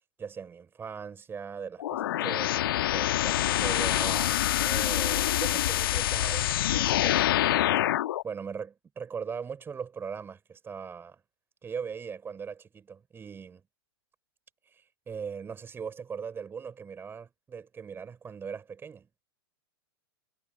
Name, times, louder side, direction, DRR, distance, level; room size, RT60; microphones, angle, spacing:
voice 1, 0.2-2.5 2.9-7.5 8.2-11.2 11.6-13.6 14.7-19.1, right 6 dB, 15° right, 4.1 m, -39 dB
sound 1, 1.8-8.2, left 13 dB, 60° left, 1.5 m, -26 dB
figure-of-eight pair, 105°, 13 cm